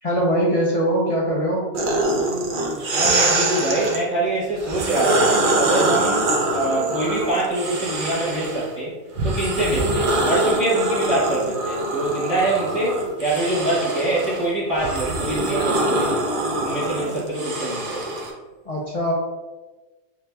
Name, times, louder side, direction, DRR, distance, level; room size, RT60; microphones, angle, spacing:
voice 1, 0.0-1.7 17.0-17.1 18.7-19.1, equal, 60° left, -5 dB, 0.3 m, -22 dB
sound 1, 1.7-4.0 4.6-8.7 9.2-18.3, right 2 dB, 50° right, 0.6 m, -24 dB
voice 2, 2.9-8.9 9.2-16.2 16.6-18.0, right 1 dB, 25° right, -10 dB, 1.2 m, -24 dB
6.6 x 2.8 x 2.2 m, 1.2 s
omnidirectional pair, 1.4 m